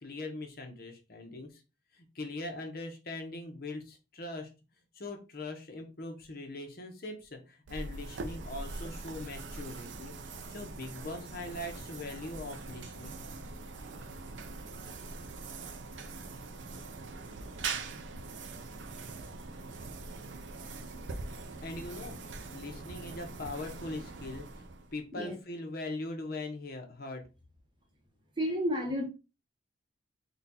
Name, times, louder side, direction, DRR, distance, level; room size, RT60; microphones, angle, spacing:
voice 1, 0.0-1.6 1.9-4.5 4.9-10.1 10.5-13.2 21.6-22.2 22.5-24.7 24.9-27.2, left 2 dB, 50° left, 0.9 m, -41 dB
sound 1, 7.7-25.1, right 3 dB, 70° right, 0.5 m, -42 dB
voice 2, 28.4-29.1, equal, 25° right, 0.8 m, -31 dB
4.0 x 2.3 x 4.1 m
head